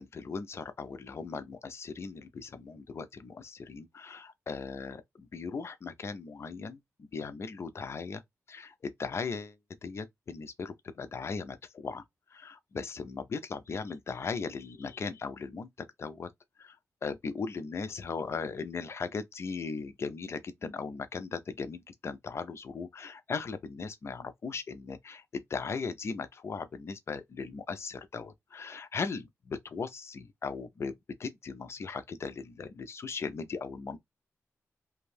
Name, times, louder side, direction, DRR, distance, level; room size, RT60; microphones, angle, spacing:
voice 1, 0.0-8.2 8.5-9.5 9.8-12.0 12.3-15.7 16.0-16.3 16.6-16.8 17.0-30.9 31.2-34.0, left 5 dB, 50° left, 0.5 m, -38 dB
2.6 x 2.3 x 3.2 m
wide cardioid pair, 115°, 6 cm